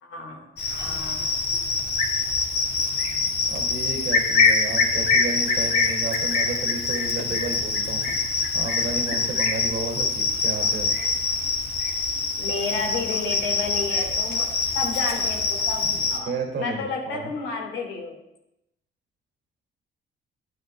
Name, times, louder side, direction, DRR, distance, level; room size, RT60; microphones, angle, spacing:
voice 1, 0.0-1.4 12.4-16.3 16.6-18.2, left 4 dB, 85° left, 1 dB, 1.8 m, -31 dB
Cricket, 0.6-16.2, left 4 dB, 55° left, 1.8 m, -24 dB
voice 2, 3.5-8.0 8.5-10.9 15.8-17.3, right 3 dB, 60° right, 2 dB, 2.2 m, -32 dB
12.0 x 9.0 x 2.3 m, 0.84 s
cardioid pair, 90°, 20 cm